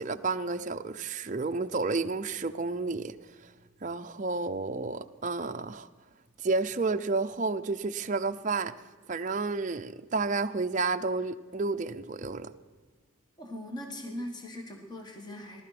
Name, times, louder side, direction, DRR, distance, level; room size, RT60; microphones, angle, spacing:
voice 1, 0.0-3.1 3.4-3.5 3.8-5.9 6.4-8.7 9.1-12.5, right 3 dB, 35° right, 0.5 m, -31 dB
voice 2, 13.4-15.6, left 1 dB, 20° left, 1.8 m, -40 dB
18.5 x 12.5 x 5.9 m
head